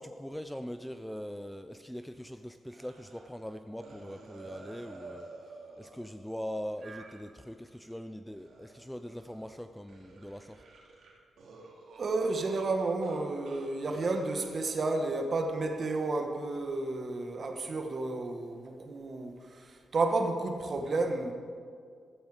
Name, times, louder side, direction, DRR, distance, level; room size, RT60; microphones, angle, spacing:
voice 1, 0.0-5.3 5.8-10.6, equal, 5° left, 9 dB, 0.4 m, -41 dB
sound 1, 2.7-3.5 3.8-8.0 8.3-9.6 9.9-13.2 13.4-14.6, right 3 dB, 75° right, 2.7 m, -51 dB
voice 2, 12.0-21.3, right 3 dB, 35° right, 5 dB, 1.3 m, -31 dB
14.5 x 13.5 x 4.9 m, 2.2 s
wide cardioid pair, 160°, 0 cm